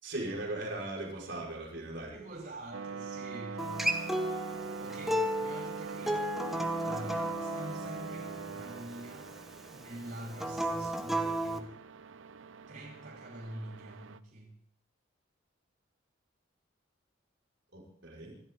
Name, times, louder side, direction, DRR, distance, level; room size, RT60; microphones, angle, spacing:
voice 1, 0.0-2.1 17.7-18.4, right 2 dB, 65° right, -3 dB, 5.4 m, -38 dB
voice 2, 2.1-4.5 4.8-6.3 6.8-9.3 9.7-11.7 12.7-14.5, right 1 dB, 40° right, -4 dB, 5.0 m, -45 dB
sound 1, 2.7-14.2, right 5 dB, 80° right, 0.7 m, -43 dB
Acoustic guitar, 3.6-8.8 10.3-11.6, right 1 dB, ahead, 1.3 m, -33 dB
26.5 x 12.5 x 3.9 m, 0.66 s
head